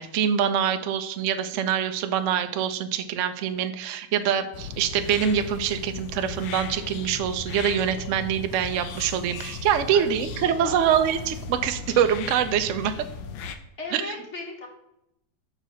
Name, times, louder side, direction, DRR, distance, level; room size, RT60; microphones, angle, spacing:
voice 1, 0.0-13.0 13.9-14.0, right 9 dB, 85° right, 9 dB, 0.6 m, -25 dB
sound 1, 4.5-13.6, left 4 dB, 90° left, 1.5 m, -37 dB
voice 2, 9.9-11.4 13.8-14.7, left 2 dB, 40° left, 1 dB, 1.6 m, -38 dB
6.7 x 3.8 x 6.2 m, 0.82 s
omnidirectional pair, 2.1 m